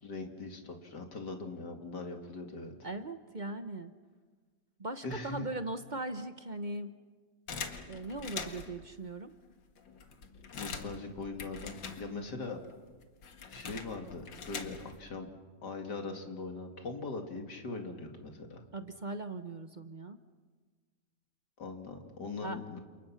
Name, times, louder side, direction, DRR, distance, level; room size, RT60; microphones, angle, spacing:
voice 1, 0.0-2.7 5.0-5.5 10.5-12.6 13.5-15.3 15.6-18.6 21.6-22.8, left 3 dB, 65° left, 4 dB, 3.0 m, -41 dB
voice 2, 2.8-3.9 4.8-6.9 7.9-9.3 18.7-20.2 22.4-22.6, right 2 dB, 35° right, 9 dB, 0.8 m, -39 dB
sound 1, 7.5-8.8 9.5-9.6 9.8-12.4 12.7-15.1, left 5 dB, 85° left, 2.4 m, -43 dB
29.5 x 28.0 x 5.9 m, 1.4 s
omnidirectional pair, 2.0 m